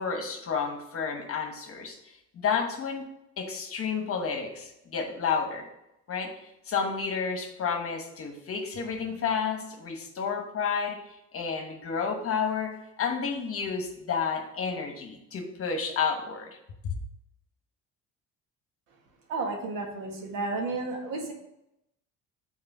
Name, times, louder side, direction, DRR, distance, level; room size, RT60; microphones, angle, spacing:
voice 1, 0.0-3.1 3.4-5.7 6.1-16.5, left 6 dB, 45° left, 4 dB, 1.1 m, -31 dB
voice 2, 19.3-21.3, right 3 dB, 90° right, 1 dB, 1.7 m, -32 dB
6.6 x 4.3 x 6.0 m, 0.84 s
cardioid pair, 120°, 32 cm